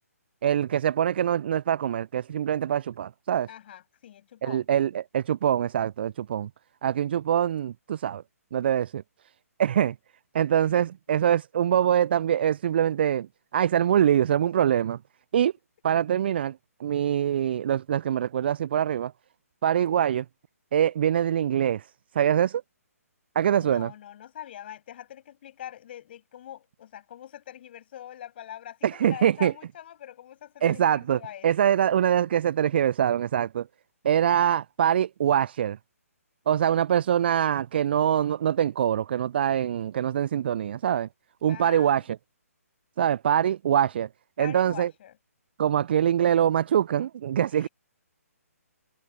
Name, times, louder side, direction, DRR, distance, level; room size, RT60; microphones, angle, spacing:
voice 1, 0.4-3.5 4.4-6.5 6.8-8.2 8.5-9.0 9.6-10.0 10.3-13.3 13.5-15.0 15.3-15.5 15.8-19.1 19.6-20.2 20.7-21.8 22.2-22.6 23.4-23.9 28.8-29.5 30.6-33.7 34.0-35.8 36.5-41.1 41.4-42.0 43.0-44.1 44.4-44.9 45.6-47.7, right 9 dB, 40° right, 0.5 m, -24 dB
voice 2, 3.5-4.7 10.6-10.9 23.6-31.7 41.5-42.1 44.4-45.2 47.4-47.7, left 11 dB, 40° left, 7.8 m, -43 dB
figure-of-eight pair, 135°, 8 cm